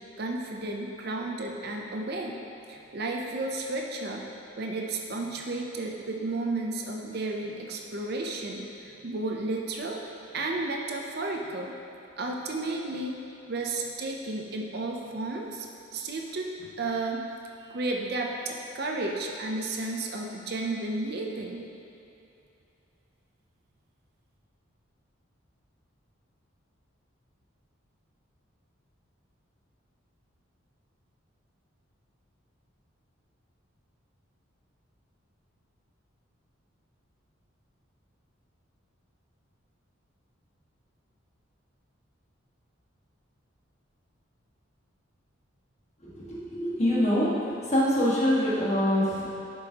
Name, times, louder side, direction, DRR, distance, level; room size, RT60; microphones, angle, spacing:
voice 1, 0.2-2.4 2.7-4.3 4.6-10.0 10.3-11.7 12.2-13.2 13.5-15.7 15.9-17.2 17.6-21.6, right 2 dB, 50° right, 1 dB, 0.6 m, -32 dB
voice 2, 46.0-49.3, equal, 35° left, -8 dB, 1.6 m, -25 dB
11.0 x 5.3 x 2.9 m, 2.8 s
head